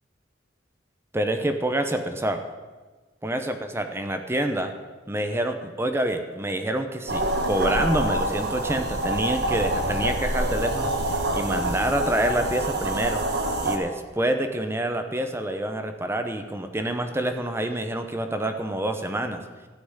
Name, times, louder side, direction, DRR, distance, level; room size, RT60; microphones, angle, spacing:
voice 1, 1.1-2.5 3.2-4.7 5.1-13.2 13.6-19.4, right 1 dB, 15° right, 7 dB, 0.7 m, -27 dB
sound 1, 7.1-13.8, right 1 dB, 60° right, 1.4 m, -26 dB
14.0 x 6.0 x 9.6 m, 1.3 s
head